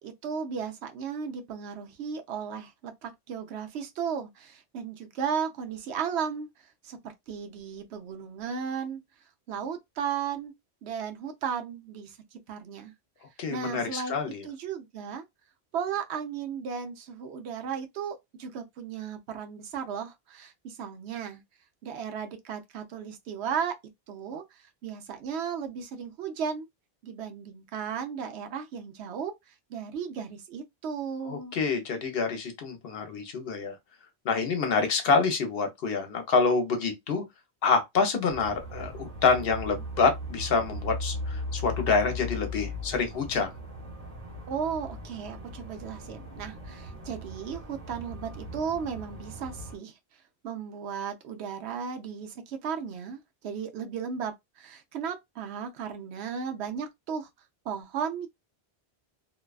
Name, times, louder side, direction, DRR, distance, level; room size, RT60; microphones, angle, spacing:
voice 1, 0.0-6.5 6.8-9.0 9.5-10.5 10.8-12.9 13.5-14.2 14.4-15.2 15.7-21.4 21.8-23.8 24.1-26.7 27.0-29.3 29.7-31.6 44.5-49.9 50.4-57.3 57.7-58.3, right 7 dB, 85° right, 0.9 m, -35 dB
voice 2, 13.4-14.4 31.2-33.8 34.2-37.2 37.6-43.5, left 4 dB, 65° left, 0.9 m, -27 dB
sound 1, 38.3-49.8, left 1 dB, 40° right, 1.2 m, -38 dB
2.6 x 2.2 x 2.3 m
omnidirectional pair, 1.1 m